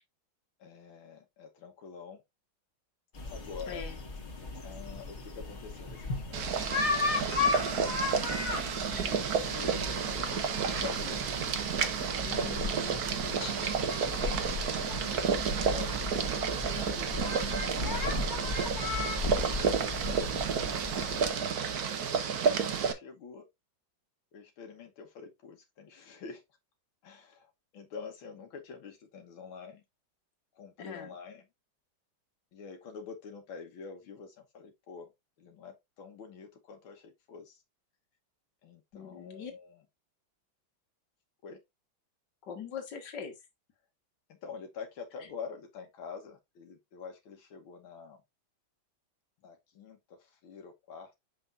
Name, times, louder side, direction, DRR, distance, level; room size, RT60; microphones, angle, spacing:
voice 1, 0.6-2.2 3.2-3.8 4.6-8.2 9.5-11.3 12.5-16.5 16.8-18.5 19.2-21.6 22.2-23.5 24.3-26.4 27.0-29.8 30.6-31.4 32.5-35.1 35.4-37.6 38.6-39.8 41.4-41.6 44.3-48.2 49.4-51.2, left 5 dB, 80° left, 2.0 m, -47 dB
sound 1, 3.1-21.3, left 3 dB, 35° left, 1.7 m, -36 dB
voice 2, 3.7-4.0 8.9-9.2 12.2-13.7 30.8-31.2 38.9-39.5 42.4-43.4 45.2-45.3, left 6 dB, 60° left, 2.1 m, -43 dB
Boiling, 6.3-22.9, right 6 dB, 55° right, 1.3 m, -31 dB
6.9 x 5.6 x 2.5 m
omnidirectional pair, 2.2 m